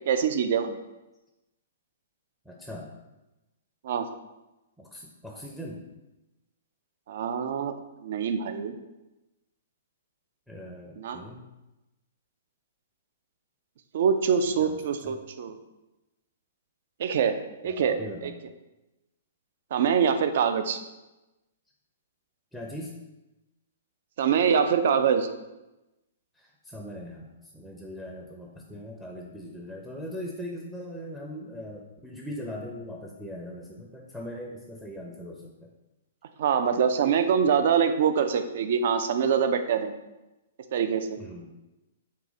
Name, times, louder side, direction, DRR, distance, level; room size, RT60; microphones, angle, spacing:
voice 1, 0.1-0.8 3.8-4.1 7.1-7.7 8.0-8.7 11.0-11.2 13.9-15.6 17.0-18.3 19.7-20.8 24.2-25.3 36.4-39.9 40.7-41.2, right 7 dB, 55° right, 8 dB, 0.3 m, -24 dB
voice 2, 2.5-2.9 4.8-5.9 10.5-11.5 14.6-15.2 17.6-18.4 22.5-23.0 26.4-27.3 27.5-35.7 41.2-41.5, equal, ahead, -1 dB, 0.5 m, -40 dB
3.7 x 2.7 x 3.9 m, 1.0 s
figure-of-eight pair, 115°, 0 cm